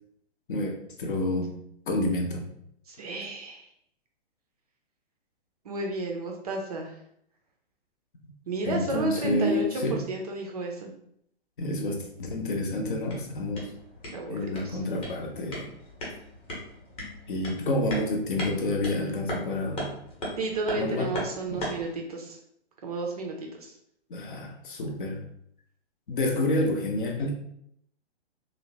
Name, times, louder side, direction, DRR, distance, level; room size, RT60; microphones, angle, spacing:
voice 1, 0.5-1.6 1.9-2.5 8.6-10.0 11.6-13.7 14.3-15.7 17.3-19.9 20.8-21.1 21.5-21.7 24.1-25.2 26.1-27.3, left 1 dB, 50° left, 2 dB, 0.6 m, -29 dB
voice 2, 2.9-3.7 5.6-7.0 8.5-10.9 14.1-14.8 20.4-22.4 22.8-23.7, right 2 dB, 35° right, 1 dB, 0.4 m, -32 dB
sound 1, 12.8-21.9, equal, 20° left, 0.8 m, -38 dB
3.1 x 2.0 x 2.7 m, 0.72 s
figure-of-eight pair, 120°, 32 cm